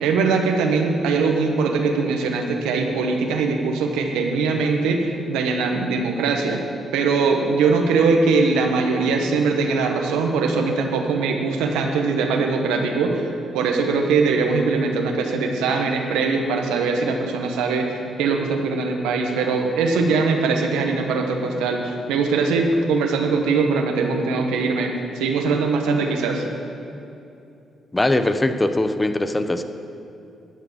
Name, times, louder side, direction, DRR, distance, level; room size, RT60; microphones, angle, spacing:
voice 1, 0.0-6.6 6.9-13.3 13.5-26.4, right 4 dB, 90° right, 3 dB, 1.2 m, -21 dB
voice 2, 27.9-29.6, left 2 dB, 20° left, 9 dB, 0.8 m, -21 dB
11.5 x 6.8 x 7.6 m, 2.7 s
supercardioid pair, 60°, 0 cm